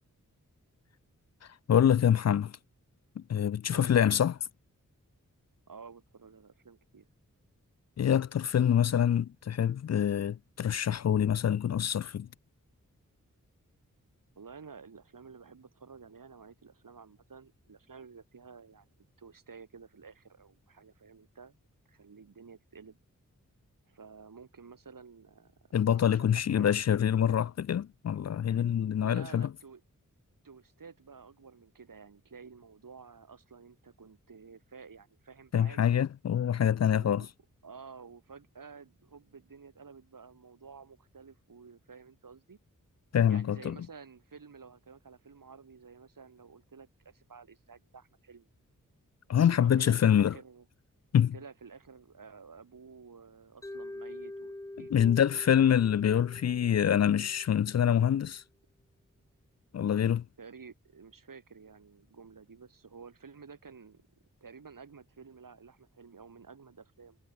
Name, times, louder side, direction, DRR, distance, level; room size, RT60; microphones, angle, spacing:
voice 1, 1.7-2.6 3.2-4.3 8.0-12.3 25.7-29.5 35.5-37.3 43.1-43.8 49.3-50.3 51.1-51.3 54.9-58.4 59.7-60.2, left 9 dB, 55° left, 0.4 m, -25 dB
voice 2, 5.7-7.1 14.4-21.5 21.9-23.0 23.9-26.7 29.0-29.8 30.4-36.0 36.9-37.3 37.6-42.6 43.3-48.5 49.4-50.7 51.3-55.8 60.4-64.1 64.4-67.2, right 5 dB, 80° right, 6.9 m, -52 dB
Mallet percussion, 53.6-57.7, left 1 dB, 10° left, 0.7 m, -45 dB
cardioid pair, 45°, 33 cm